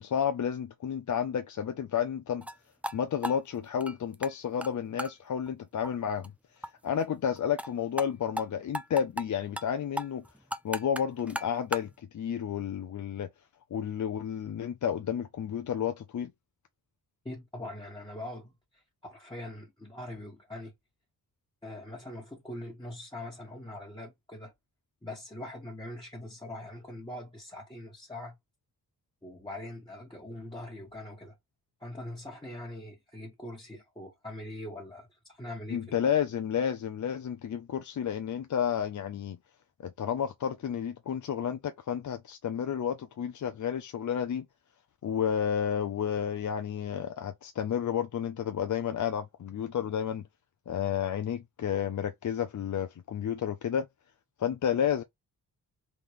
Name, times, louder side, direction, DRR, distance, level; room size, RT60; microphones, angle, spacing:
voice 1, 0.0-2.5 2.9-6.3 6.8-10.2 10.6-13.3 13.7-16.3 35.7-39.4 39.8-44.4 45.0-50.2 50.7-53.9 54.4-55.0, left 8 dB, 50° left, 0.6 m, -31 dB
sound 1, 2.4-2.6 2.8-3.0 3.2-4.3 4.6-4.7 5.0-5.1 5.5-5.6 5.8-5.9 6.2-6.3 6.6-6.7 7.0-7.1 7.4-7.7 8.0-8.1 8.4-8.5 8.7-9.3 9.6-9.7 10.0-11.9, equal, 5° right, 0.4 m, -35 dB
voice 2, 17.2-20.7 21.6-24.5 25.0-28.3 29.2-31.3 31.8-36.0, left 1 dB, 10° left, 1.5 m, -42 dB
3.8 x 3.6 x 3.0 m
cardioid pair, 90°, 38 cm